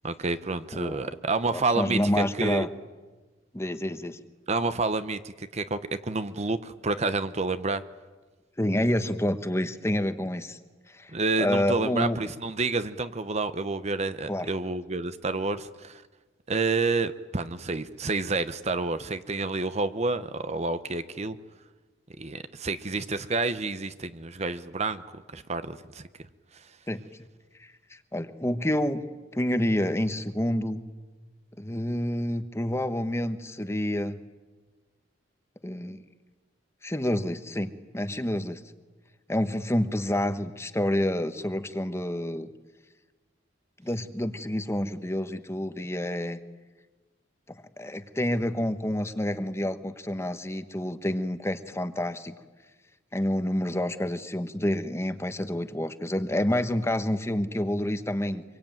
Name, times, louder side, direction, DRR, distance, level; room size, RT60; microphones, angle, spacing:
voice 1, 0.0-2.7 4.5-7.8 11.1-16.0 16.5-21.4 22.2-25.0 25.3-26.0, right 3 dB, 35° right, 0.9 m, -29 dB
voice 2, 0.7-1.1 1.5-2.7 3.5-4.2 8.6-10.6 10.9-11.1 11.4-12.2 14.3-14.5 26.9-27.0 27.6-29.0 29.3-30.9 31.6-34.2 35.6-36.0 36.8-38.6 39.3-42.5 43.8-46.4 47.5-52.3 53.1-58.4, left 1 dB, 15° left, 1.1 m, -28 dB
25.0 x 23.5 x 9.1 m
head